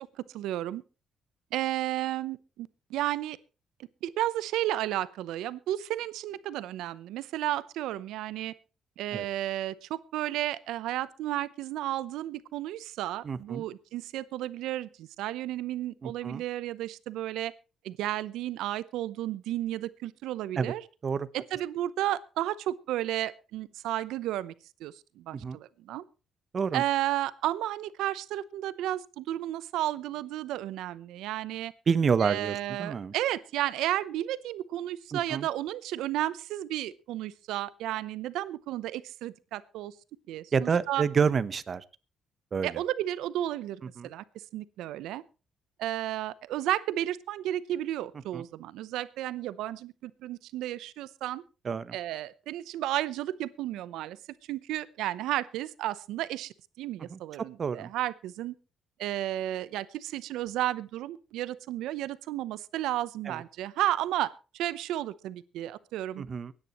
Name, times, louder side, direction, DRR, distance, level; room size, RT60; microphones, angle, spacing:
voice 1, 0.3-0.8 1.5-3.4 4.0-8.5 9.0-17.5 17.8-20.8 21.3-24.5 24.8-26.0 26.7-31.7 32.2-39.9 40.3-41.0 42.6-44.2 44.5-45.2 45.8-51.4 51.9-54.2 54.5-58.5 59.0-66.2, right 13 dB, 90° right, 17 dB, 0.7 m, -33 dB
voice 2, 13.2-13.6 16.0-16.4 20.5-20.7 21.0-21.3 25.3-25.6 26.5-26.8 31.9-33.1 35.1-35.5 40.5-41.8 42.5-42.8 44.0-44.1 48.3-48.4 51.6-52.0 57.1-57.2 57.6-57.9 63.2-63.4 66.2-66.5, right 6 dB, 45° right, 15 dB, 0.9 m, -28 dB
24.0 x 9.8 x 3.0 m, 0.32 s
cardioid pair, 90°, 0 cm